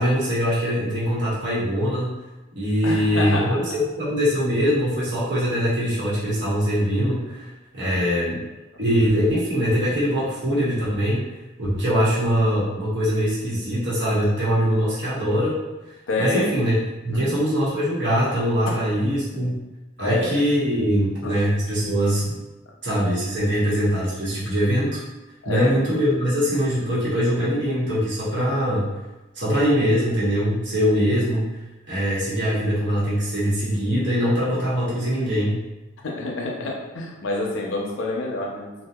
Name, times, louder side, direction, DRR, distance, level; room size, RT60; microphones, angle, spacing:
voice 1, 0.0-2.1 2.5-7.5 7.7-8.4 8.8-11.2 11.6-15.6 16.2-19.5 20.0-22.3 22.8-25.0 25.4-28.9 29.4-31.5 31.9-35.6, equal, 65° right, -8 dB, 1.0 m, -22 dB
voice 2, 2.8-3.6 7.1-7.2 7.8-8.0 16.1-16.7 17.1-17.4 18.7-18.8 19.3-19.5 20.0-20.4 21.2-21.4 25.4-25.8 36.0-38.8, left 2 dB, 85° left, -2 dB, 0.6 m, -28 dB
2.7 x 2.2 x 2.3 m, 1.1 s
head